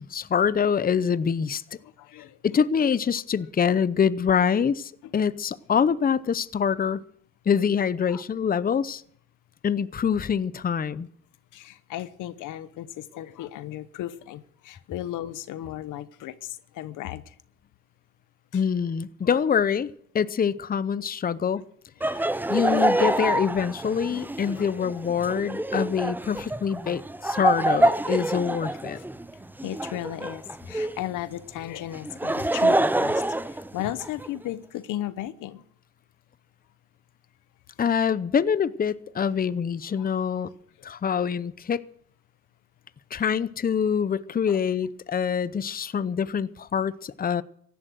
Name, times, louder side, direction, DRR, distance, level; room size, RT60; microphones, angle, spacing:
voice 1, 0.0-1.8 2.4-7.0 7.5-9.0 9.6-11.1 18.5-21.7 22.1-29.0 37.8-40.5 40.8-41.8 43.1-47.4, left 7 dB, 30° left, 0.7 m, -25 dB
voice 2, 1.7-2.6 5.0-5.1 8.1-8.2 11.5-17.4 18.5-18.6 19.2-19.4 22.6-22.7 24.5-24.6 25.2-25.3 25.9-26.0 29.0-29.1 29.6-35.6 39.9-40.1 40.8-40.9 44.5-44.6, left 13 dB, 90° left, 1.0 m, -36 dB
Laughter, 22.0-31.1 31.9-34.3, right 1 dB, 5° right, 0.6 m, -26 dB
15.5 x 12.0 x 6.3 m
cardioid pair, 90°, 30 cm